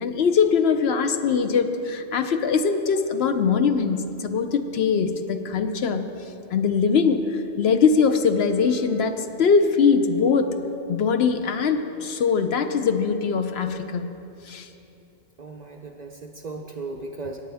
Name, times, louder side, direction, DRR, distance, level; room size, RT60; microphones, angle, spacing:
voice 1, 0.0-6.1 6.5-10.5 10.9-14.1 14.5-14.7 16.9-17.0, left 5 dB, 65° left, 8 dB, 0.8 m, -22 dB
voice 2, 15.4-17.4, right 3 dB, 45° right, 2 dB, 0.6 m, -36 dB
17.0 x 8.8 x 3.4 m, 2.8 s
omnidirectional pair, 1.2 m